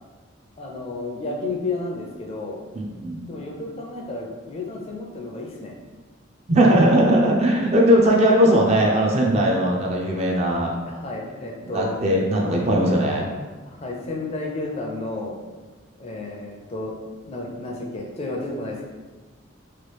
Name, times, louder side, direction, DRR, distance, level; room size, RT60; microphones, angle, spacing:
voice 1, 0.6-2.6 3.3-5.7 10.8-12.0 13.7-15.4 16.0-18.8, left 2 dB, 30° left, -1 dB, 0.4 m, -32 dB
voice 2, 2.7-3.3 6.5-10.7 11.7-13.3, equal, 35° right, -1 dB, 0.4 m, -19 dB
3.0 x 2.3 x 3.2 m, 1.3 s
head